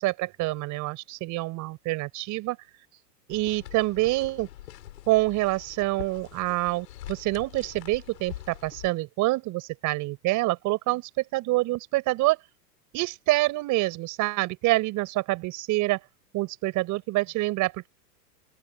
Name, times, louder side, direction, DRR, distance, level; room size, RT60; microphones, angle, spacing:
voice 1, 0.0-2.6 3.3-4.5 5.1-12.4 12.9-16.0 16.3-17.9, right 19 dB, 35° right, 5.0 m, -26 dB
sound 1, 3.3-8.9, left 13 dB, 70° left, 6.7 m, -44 dB
open air
hypercardioid pair, 135°, 50 cm